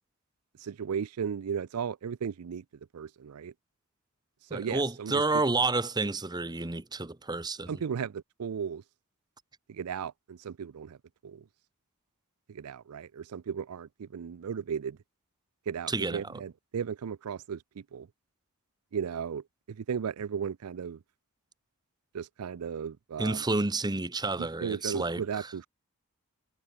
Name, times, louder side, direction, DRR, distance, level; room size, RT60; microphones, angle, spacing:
voice 1, 0.6-2.6 2.9-3.5 4.5-5.2 7.7-8.8 9.7-11.0 11.2-11.4 12.5-15.0 15.7-18.1 18.9-21.0 22.1-23.4 24.4-25.7, right 7 dB, 80° right, 0.4 m, -35 dB
voice 2, 4.5-7.8 15.9-16.4 23.2-25.5, right 3 dB, 20° right, 1.0 m, -30 dB
head